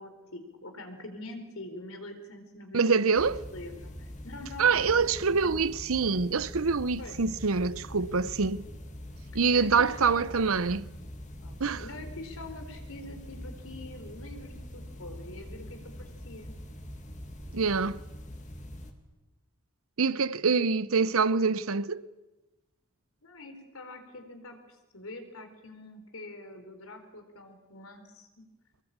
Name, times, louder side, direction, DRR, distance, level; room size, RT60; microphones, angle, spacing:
voice 1, 0.0-3.2 3.5-5.0 5.3-5.6 7.0-7.2 8.0-8.1 9.5-10.5 11.4-16.5 23.2-28.4, left 2 dB, 80° left, 4.2 m, -45 dB
voice 2, 2.7-3.4 4.6-8.6 9.3-10.8 11.6-11.8 17.5-18.0 20.0-22.0, right 5 dB, 80° right, 0.8 m, -25 dB
sound 1, 3.1-18.9, equal, 35° left, 2.4 m, -43 dB
24.5 x 21.0 x 8.8 m
head